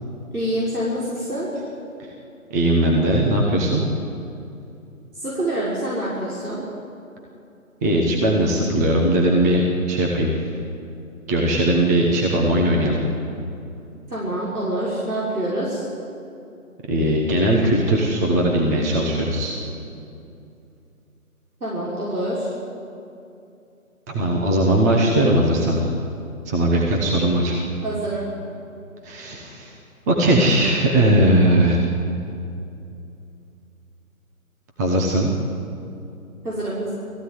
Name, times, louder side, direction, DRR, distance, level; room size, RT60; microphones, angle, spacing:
voice 1, 0.3-1.5 5.1-6.6 14.1-15.9 21.6-22.5 27.8-28.2 36.4-36.9, right 1 dB, 90° right, -7 dB, 6.0 m, -26 dB
voice 2, 2.5-3.8 7.8-9.6 9.9-10.4 11.3-13.0 16.9-19.5 24.1-25.9 26.4-27.6 29.0-29.7 30.1-31.8 34.8-35.3, right 1 dB, 10° right, -2 dB, 1.1 m, -19 dB
18.5 x 15.0 x 10.0 m, 2.7 s
figure-of-eight pair, 155°, 43 cm